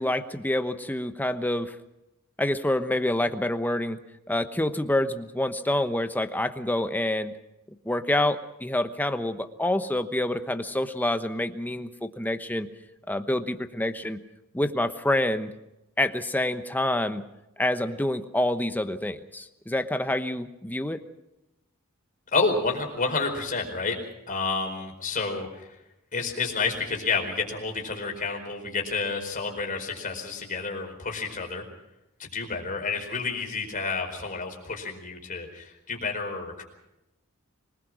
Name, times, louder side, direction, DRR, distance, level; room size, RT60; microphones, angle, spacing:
voice 1, 0.0-1.7 2.4-4.0 4.3-7.3 7.8-12.7 13.1-14.2 14.5-15.5 16.0-17.2 17.6-21.0, left 1 dB, 10° left, 9 dB, 1.0 m, -27 dB
voice 2, 22.3-24.0 24.3-25.8 26.1-31.7 32.2-36.6, left 4 dB, 40° left, 2 dB, 4.7 m, -30 dB
25.5 x 20.0 x 6.2 m, 0.92 s
head